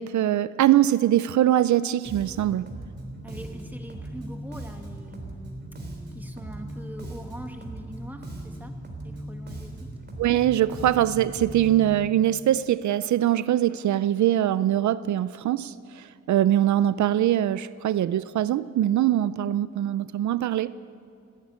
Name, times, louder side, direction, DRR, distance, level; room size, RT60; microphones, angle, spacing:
voice 1, 0.0-2.7 10.2-20.7, right 12 dB, 75° right, 16 dB, 0.5 m, -23 dB
Bass guitar, 2.0-11.9, right 1 dB, 35° right, 4.0 m, -38 dB
voice 2, 3.2-5.6 6.1-8.8 9.0-9.9, equal, 5° right, 4 dB, 2.0 m, -42 dB
29.0 x 11.0 x 9.6 m, 2.4 s
cardioid pair, 115°, 29 cm